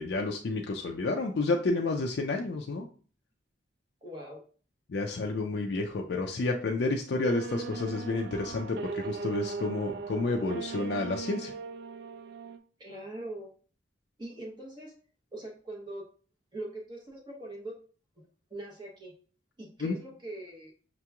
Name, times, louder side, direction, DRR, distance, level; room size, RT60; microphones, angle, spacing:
voice 1, 0.0-2.9 4.9-11.5 19.8-19.9, left 3 dB, 65° left, 1 dB, 0.4 m, -30 dB
voice 2, 4.0-4.4 12.8-13.5 14.2-14.9 15.3-16.1 16.5-17.8 18.2-18.3 18.5-19.2 19.6-20.7, right 1 dB, 25° right, -1 dB, 0.9 m, -42 dB
sound 1, 7.2-12.6, right 5 dB, 60° right, 0.3 m, -39 dB
5.8 x 2.9 x 2.3 m, 0.41 s
head